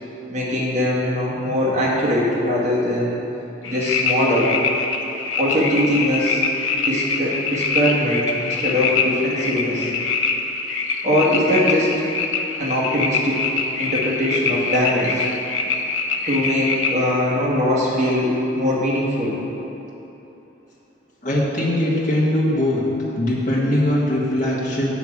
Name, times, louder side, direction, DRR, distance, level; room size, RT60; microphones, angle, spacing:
voice 1, 0.3-3.2 3.6-4.5 5.4-6.4 6.8-9.9 11.0-12.0 12.6-13.5 13.8-15.2 16.2-19.4, left 1 dB, 35° right, -6 dB, 1.4 m, -21 dB
sound 1, 3.6-17.0, left 4 dB, 80° left, 0.6 m, -24 dB
voice 2, 21.2-22.8 23.1-24.9, left 1 dB, 40° left, -5 dB, 1.4 m, -20 dB
8.4 x 5.8 x 4.7 m, 3.0 s
head